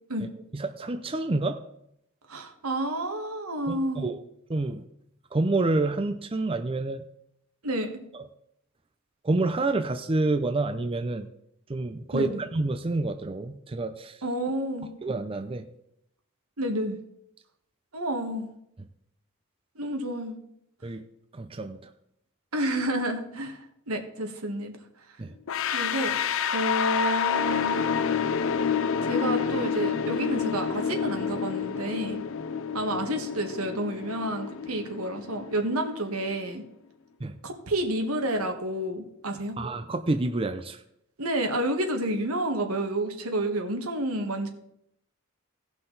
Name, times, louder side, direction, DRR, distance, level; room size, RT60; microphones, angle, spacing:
voice 1, 0.5-1.6 3.7-4.2 4.5-4.8 5.3-7.0 9.2-11.3 11.7-14.2 15.0-15.6 20.8-21.1 21.3-21.9 25.2-25.3 37.2-37.4 39.6-40.8, right 2 dB, 25° right, 7 dB, 0.5 m, -28 dB
voice 2, 2.3-4.1 7.6-7.9 12.1-12.4 14.2-14.9 16.6-17.0 17.9-18.5 19.7-20.4 22.5-24.7 25.7-28.0 29.0-32.2 32.7-36.6 37.4-39.6 41.2-44.5, right 1 dB, 90° right, 5 dB, 1.6 m, -30 dB
sound 1, 25.5-36.4, left 6 dB, 65° left, 0.4 m, -29 dB
17.5 x 5.8 x 4.0 m, 0.77 s
head